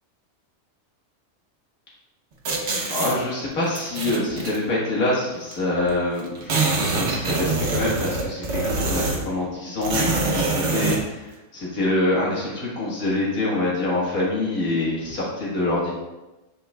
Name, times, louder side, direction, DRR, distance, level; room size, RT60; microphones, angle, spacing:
sound 1, 2.4-3.2 3.7-4.6 5.5-5.6 5.8-5.9 6.2-9.3 9.8-11.0, right 3 dB, 60° right, 1.2 m, -24 dB
voice 1, 2.9-15.9, left 2 dB, 85° left, -6 dB, 2.1 m, -25 dB
7.9 x 5.5 x 2.3 m, 1.0 s
omnidirectional pair, 1.5 m